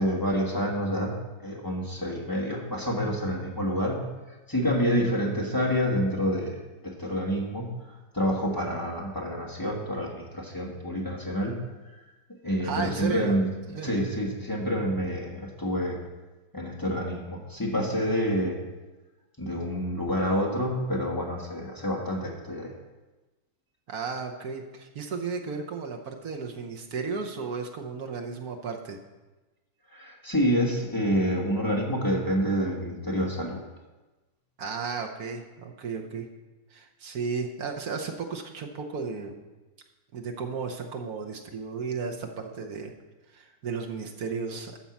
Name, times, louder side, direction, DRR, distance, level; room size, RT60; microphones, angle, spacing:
voice 1, 0.0-6.6 6.8-7.7 8.1-11.6 12.4-13.5 13.8-16.0 16.5-18.6 19.4-22.7 29.9-33.6, equal, 15° left, -2 dB, 1.1 m, -28 dB
voice 2, 12.6-13.3 13.7-13.9 23.9-29.0 34.6-36.3 36.7-39.4 40.1-42.9 43.3-44.8, right 5 dB, 55° right, 2 dB, 1.1 m, -34 dB
12.5 x 4.5 x 7.1 m, 1.2 s
omnidirectional pair, 2.3 m